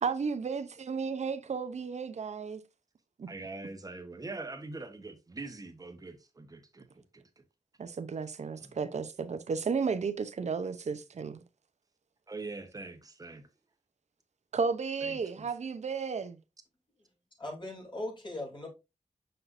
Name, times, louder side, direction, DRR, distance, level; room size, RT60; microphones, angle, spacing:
voice 1, 0.0-2.6 3.2-3.3 7.8-11.4 14.5-16.4, right 5 dB, 60° right, 0.7 m, -33 dB
voice 2, 3.3-7.2 8.6-8.8 12.3-13.5 15.0-15.5, right 3 dB, 30° right, 1.1 m, -43 dB
voice 3, 17.4-18.7, left 1 dB, 40° left, 3.0 m, -39 dB
6.5 x 6.0 x 2.6 m
wide cardioid pair, 125°, 13 cm